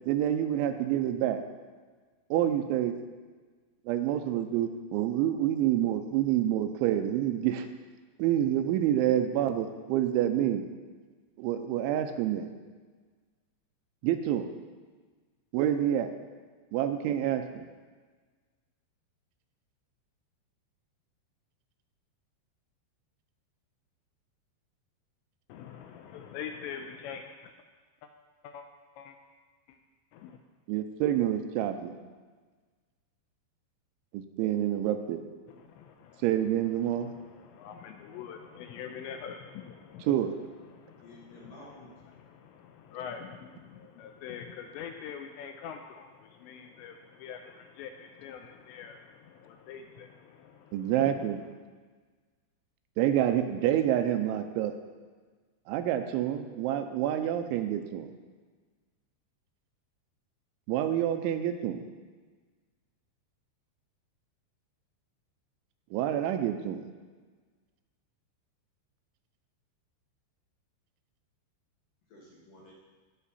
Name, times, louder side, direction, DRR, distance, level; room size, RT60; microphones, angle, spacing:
voice 1, 0.1-1.4 2.3-2.9 3.9-7.7 8.2-10.6 11.4-12.5 14.0-14.5 15.5-16.1 16.7-17.7 30.7-32.0 34.1-35.2 36.2-37.1 40.0-40.3 50.7-51.4 53.0-54.7 55.7-58.1 60.7-61.8 65.9-66.8, right 11 dB, 85° right, 7 dB, 3.0 m, -27 dB
voice 2, 25.5-27.5 28.0-28.1 28.4-28.7 29.0-29.2 29.7-29.8 30.1-30.4 35.5-36.2 36.8-40.4 40.6-51.2, left 7 dB, 85° left, 5 dB, 2.7 m, -45 dB
voice 3, 41.0-42.0 72.1-72.7, left 1 dB, 65° left, -4 dB, 2.3 m, -51 dB
17.0 x 6.2 x 4.2 m, 1.4 s
omnidirectional pair, 5.5 m